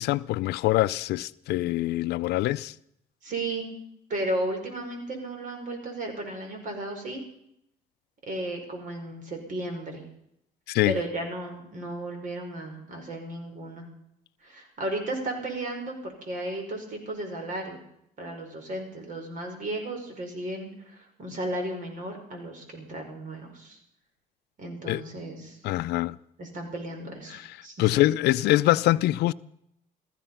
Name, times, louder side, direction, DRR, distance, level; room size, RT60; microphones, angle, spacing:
voice 1, 0.0-2.7 10.7-10.9 24.9-25.0 25.6-26.2 27.3-27.4 27.8-29.3, left 16 dB, 75° left, 0.5 m, -24 dB
voice 2, 3.2-3.7 4.1-7.2 8.3-10.0 10.9-13.8 14.4-17.8 18.2-23.8 24.6-25.6 26.4-27.9, right 1 dB, 50° right, 5.3 m, -34 dB
16.0 x 14.0 x 5.6 m
cardioid pair, 110°, 17 cm